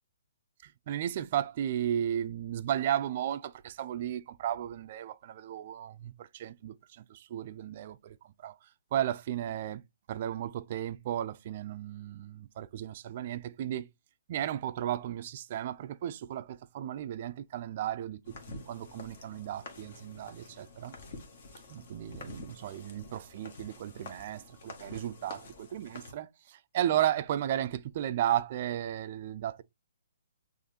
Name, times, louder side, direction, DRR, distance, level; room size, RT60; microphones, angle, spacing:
voice 1, 0.9-6.8 7.1-8.1 8.4-8.5 8.9-9.8 10.1-13.9 14.3-20.9 21.7-25.4 25.7-29.6, right 11 dB, 45° right, 0.3 m, -34 dB
sound 1, 18.2-26.1, left 3 dB, 55° left, 1.2 m, -48 dB
6.4 x 2.5 x 2.7 m
hypercardioid pair, 145°, 0 cm